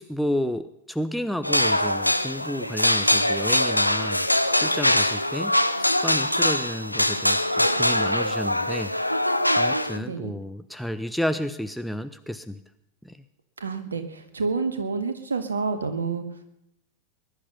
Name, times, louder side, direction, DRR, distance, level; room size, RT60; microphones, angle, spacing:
voice 1, 0.0-4.3 4.6-5.6 6.0-8.9 9.6-12.6 13.0-13.2, equal, ahead, 9 dB, 0.7 m, -31 dB
sound 1, 1.4-10.0, left 1 dB, 90° left, 0.7 m, -23 dB
voice 2, 10.0-10.3 13.6-16.4, right 4 dB, 75° right, 8 dB, 1.8 m, -29 dB
20.5 x 11.5 x 5.6 m, 0.80 s
figure-of-eight pair, 90°, 0 cm